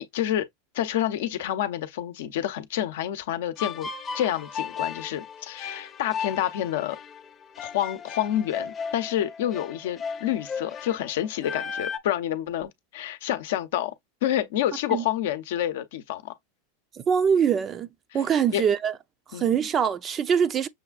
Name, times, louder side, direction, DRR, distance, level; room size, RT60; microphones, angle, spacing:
voice 1, 0.1-0.5 0.7-3.9 4.1-7.0 7.6-13.9 14.2-16.3 18.1-18.2 18.5-18.6 19.3-19.7, left 11 dB, 70° left, 0.7 m, -28 dB
sound 1, 3.6-12.0, left 6 dB, 25° left, 0.7 m, -36 dB
voice 2, 17.1-17.9 18.1-18.9 19.3-20.7, right 7 dB, 25° right, 0.4 m, -23 dB
6.4 x 2.4 x 2.3 m
supercardioid pair, 130°, 0 cm